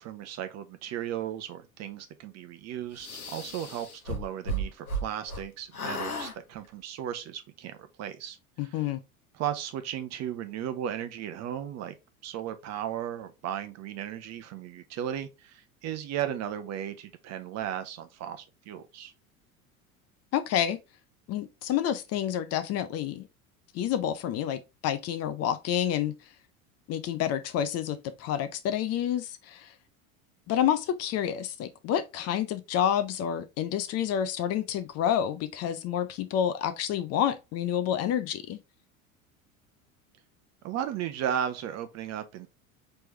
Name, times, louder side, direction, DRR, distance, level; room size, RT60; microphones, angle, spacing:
voice 1, 0.0-8.4 8.6-8.9 9.3-11.9 12.2-19.1 40.6-42.5, right 10 dB, 40° right, 0.8 m, -35 dB
sound 1, 3.0-5.4 5.7-6.3, right 1 dB, 85° left, 0.9 m, -34 dB
voice 2, 8.6-9.0 20.3-20.8 21.3-23.3 23.7-26.1 26.9-29.7 30.5-38.6, left 10 dB, 35° left, 0.6 m, -29 dB
4.5 x 3.3 x 3.1 m
figure-of-eight pair, 75°, 43 cm